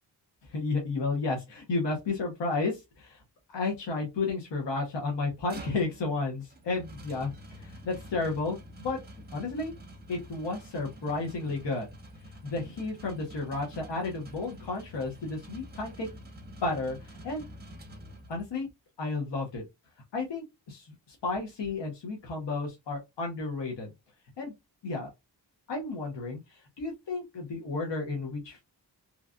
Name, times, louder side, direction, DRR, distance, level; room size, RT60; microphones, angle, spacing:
voice 1, 0.4-3.2 3.5-9.0 9.3-9.7 10.1-11.9 12.2-16.1 16.6-17.4 18.3-18.7 19.0-19.6 20.1-23.9 24.4-24.5 24.8-25.1 25.7-28.6, left 3 dB, 80° left, 0 dB, 1.1 m, -32 dB
sound 1, 5.3-18.6, equal, 25° right, 0.9 m, -48 dB
3.1 x 2.4 x 2.4 m, 0.21 s
cardioid pair, 60°, 43 cm